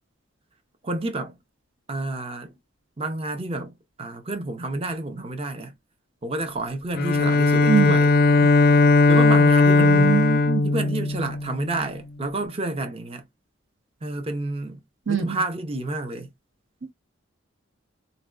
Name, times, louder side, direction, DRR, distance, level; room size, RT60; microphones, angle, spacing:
voice 1, 0.8-1.4 1.9-2.5 3.0-3.7 4.0-5.7 6.2-8.1 9.1-10.2 10.6-13.2 14.0-16.3, right 2 dB, 30° right, 0.5 m, -29 dB
Bowed string instrument, 6.9-11.8, left 3 dB, 50° left, 0.4 m, -18 dB
voice 2, 9.8-10.7 15.1-15.4, right 6 dB, 70° right, 0.9 m, -23 dB
4.0 x 2.2 x 2.3 m
head